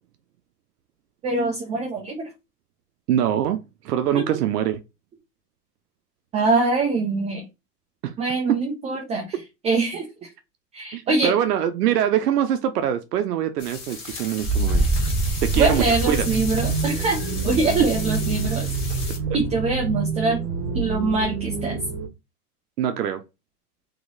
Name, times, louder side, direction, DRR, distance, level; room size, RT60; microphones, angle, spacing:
voice 1, 1.2-2.2 4.1-4.2 6.3-7.4 8.2-9.4 9.6-10.3 10.7-11.4 15.6-17.2 17.4-18.7 19.3-20.4 20.7-21.8, right 3 dB, 15° right, 0.5 m, -23 dB
voice 2, 3.1-4.8 8.0-8.1 8.5-8.6 10.9-14.8 15.4-16.3 22.8-23.2, right 10 dB, 75° right, 0.7 m, -23 dB
sound 1, 13.6-19.2, left 4 dB, 25° left, 1.9 m, -35 dB
Wind, 14.4-19.9, right 2 dB, 5° left, 1.5 m, -28 dB
sound 2, 14.4-22.1, right 4 dB, 50° right, 1.2 m, -28 dB
3.1 x 3.0 x 3.9 m
hypercardioid pair, 125°, 47 cm